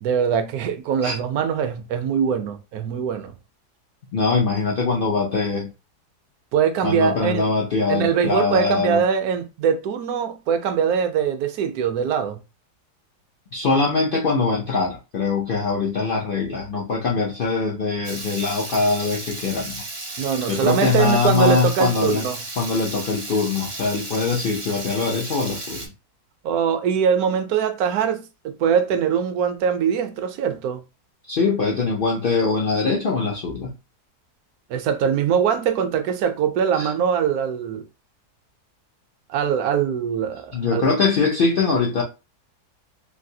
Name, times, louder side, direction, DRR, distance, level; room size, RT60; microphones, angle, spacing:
voice 1, 0.0-3.3 6.5-7.5 7.9-12.4 20.2-22.4 26.4-30.8 34.7-37.8 39.3-40.8, right 7 dB, 75° right, 1.0 m, -22 dB
voice 2, 4.1-5.7 6.8-9.0 13.5-19.8 20.5-22.2 22.6-25.9 31.3-33.7 36.8-36.9 40.5-42.0, left 4 dB, 85° left, 0.4 m, -22 dB
Water tap faucet / Liquid, 18.0-25.9, right 2 dB, 40° right, 0.4 m, -34 dB
3.2 x 2.6 x 2.7 m
omnidirectional pair, 1.7 m